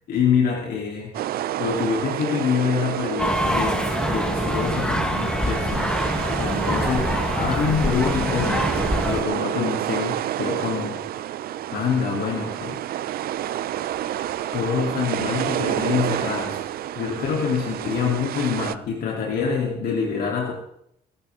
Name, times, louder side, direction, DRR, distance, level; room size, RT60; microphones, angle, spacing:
voice 1, 0.1-1.2 1.6-11.2 11.7-12.8 14.5-20.5, left 6 dB, 65° left, -1 dB, 3.9 m, -26 dB
sound 1, 1.1-18.8, right 12 dB, 65° right, 0.7 m, -29 dB
sound 2, 3.2-9.2, left 1 dB, 5° left, 1.7 m, -25 dB
21.0 x 12.5 x 4.0 m, 0.73 s
cardioid pair, 110°, 17 cm